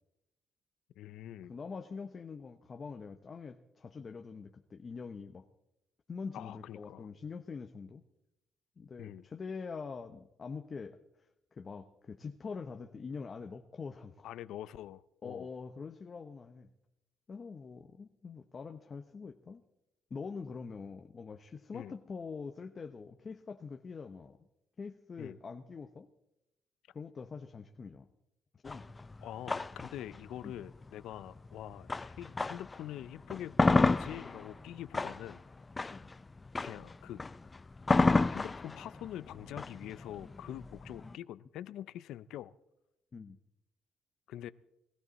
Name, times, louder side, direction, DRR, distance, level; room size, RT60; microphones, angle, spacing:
voice 1, 1.0-1.5 6.3-7.1 9.0-9.2 14.2-15.5 21.7-21.9 25.2-25.4 29.2-35.4 36.6-37.2 38.3-42.5 44.3-44.5, left 12 dB, 85° left, 16 dB, 0.5 m, -44 dB
voice 2, 1.5-5.5 6.1-8.0 8.8-11.0 11.5-14.3 15.2-16.7 17.3-19.6 20.1-24.4 24.8-26.1 26.9-28.1 28.6-28.9 30.4-30.5 35.9-36.1 43.1-43.4, left 5 dB, 40° left, 6 dB, 0.8 m, -44 dB
sound 1, 28.7-32.8 33.2-41.1, left 3 dB, 25° left, 0.4 m, -31 dB
19.0 x 14.0 x 4.1 m, 0.89 s
cardioid pair, 90°, 0 cm